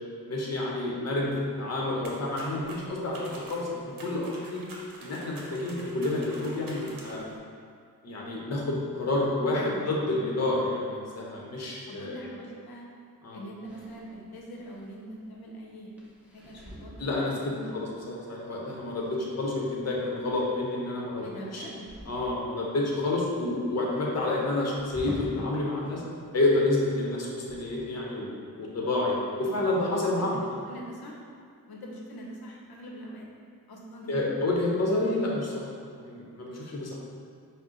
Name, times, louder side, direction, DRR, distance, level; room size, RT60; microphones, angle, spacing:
voice 1, 0.2-4.6 5.0-7.2 8.0-12.2 13.2-13.4 17.0-21.3 21.5-21.6 22.1-26.0 26.3-30.3 34.1-37.0, left 2 dB, 45° left, -3 dB, 0.8 m, -29 dB
sound 1, 2.0-7.4, right 1 dB, 65° right, 0.8 m, -47 dB
voice 2, 9.5-9.9 11.9-12.9 13.3-15.0 15.3-15.9 16.3-17.8 21.2-21.9 29.4-31.2 31.7-33.3 33.7-34.3, equal, 80° left, -1 dB, 0.7 m, -43 dB
sound 2, 13.6-25.9 26.2-27.8, equal, 5° right, 0.7 m, -46 dB
5.3 x 2.1 x 3.7 m, 2.2 s
wide cardioid pair, 95°, 37 cm